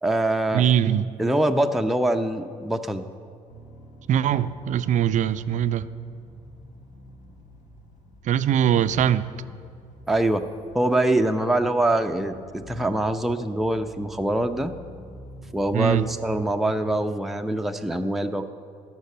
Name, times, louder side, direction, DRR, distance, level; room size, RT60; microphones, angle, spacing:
voice 1, 0.0-0.6 1.2-3.1 10.1-10.5 10.7-14.7 15.5-18.5, right 1 dB, ahead, 0.6 m, -24 dB
voice 2, 0.5-1.1 4.1-5.9 8.3-9.3 15.7-16.2, right 10 dB, 45° right, 0.5 m, -22 dB
sound 1, 3.5-17.0, equal, 50° left, 1.6 m, -46 dB
11.5 x 6.5 x 8.5 m
hypercardioid pair, 50°, 17 cm